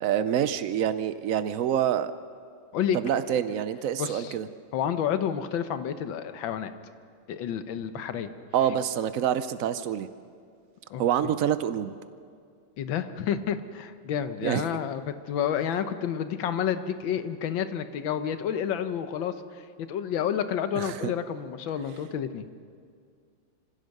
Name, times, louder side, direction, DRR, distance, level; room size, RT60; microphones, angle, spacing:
voice 1, 0.0-2.1 2.9-4.5 8.5-10.1 11.0-11.9 14.4-14.7 20.8-21.1, right 10 dB, 80° right, 12 dB, 0.7 m, -26 dB
voice 2, 4.0-4.4 4.7-6.7 7.3-8.3 10.9-11.0 12.8-22.6, left 8 dB, 75° left, 10 dB, 1.7 m, -30 dB
25.0 x 16.0 x 6.5 m, 2.2 s
omnidirectional pair, 2.2 m